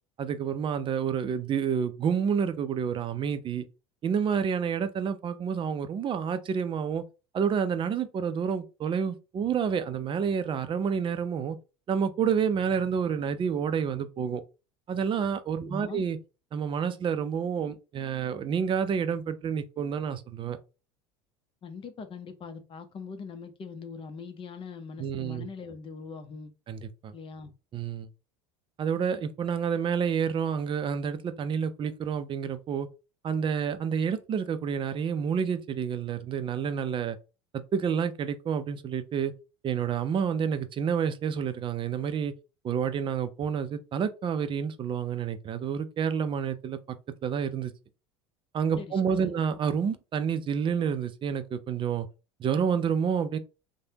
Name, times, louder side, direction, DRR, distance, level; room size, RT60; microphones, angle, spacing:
voice 1, 0.2-3.6 4.0-7.0 7.3-11.6 11.9-14.4 14.9-16.2 16.5-20.6 25.0-25.5 26.7-27.1 27.7-28.1 28.8-32.9 33.2-37.2 37.5-39.3 39.6-42.3 42.6-47.0 47.2-47.7 48.5-52.1 52.4-53.4, right 7 dB, 35° right, 0.5 m, -29 dB
voice 2, 15.6-16.0 21.6-26.5 27.1-27.5 48.8-49.3, left 5 dB, 35° left, 0.7 m, -42 dB
3.2 x 2.2 x 2.7 m
hypercardioid pair, 80°, 15 cm